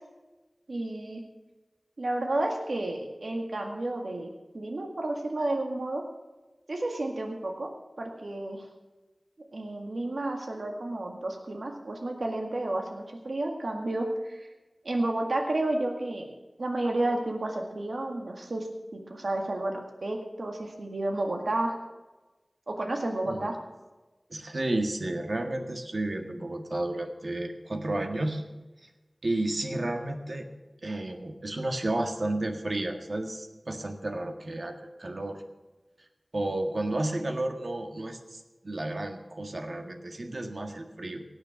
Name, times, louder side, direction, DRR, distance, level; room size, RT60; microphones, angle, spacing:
voice 1, 0.7-1.2 2.0-4.3 4.5-6.0 6.7-7.7 8.0-8.7 9.5-14.5 14.8-16.2 16.6-18.7 18.9-21.8 22.7-23.6, right 2 dB, 80° right, 2 dB, 2.0 m, -31 dB
voice 2, 24.3-28.4 28.8-28.9 29.2-30.5 30.8-35.4 36.3-41.2, right 1 dB, 65° right, 4 dB, 1.7 m, -32 dB
17.5 x 6.8 x 7.0 m, 1.1 s
wide cardioid pair, 40°, 0 cm